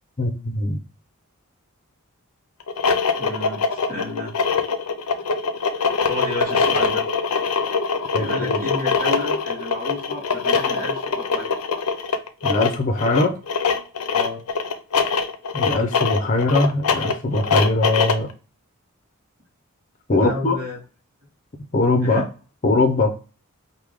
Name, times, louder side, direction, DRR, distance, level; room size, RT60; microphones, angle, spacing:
voice 1, 0.2-0.8 8.1-8.6 12.4-13.4 15.5-18.3 20.1-20.6 21.7-22.3 22.6-23.1, left 2 dB, 35° left, 3 dB, 0.6 m, -21 dB
sound 1, 2.6-18.3, left 5 dB, 90° left, 0.6 m, -23 dB
voice 2, 3.2-4.3 6.1-7.0 8.1-11.5 14.1-14.4 20.1-20.8 22.0-22.3, left 2 dB, 40° right, -3 dB, 1.3 m, -31 dB
4.7 x 2.2 x 3.5 m, 0.36 s
head